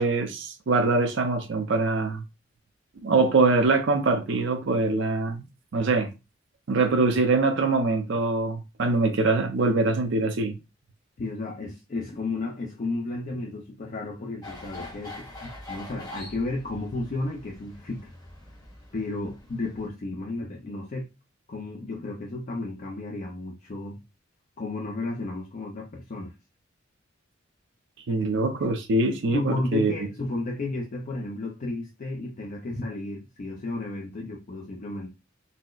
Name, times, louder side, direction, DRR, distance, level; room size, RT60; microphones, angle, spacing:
voice 1, 0.0-2.2 3.0-5.4 5.7-6.1 6.7-10.6 28.1-29.9, right 3 dB, 65° right, 0.5 m, -23 dB
voice 2, 11.2-18.1 18.9-21.1 21.5-24.0 24.6-26.3 29.3-35.1, left 2 dB, 40° left, 0.4 m, -33 dB
sound 1, 14.4-19.9, left 2 dB, 20° left, 0.9 m, -44 dB
4.0 x 2.0 x 2.3 m
head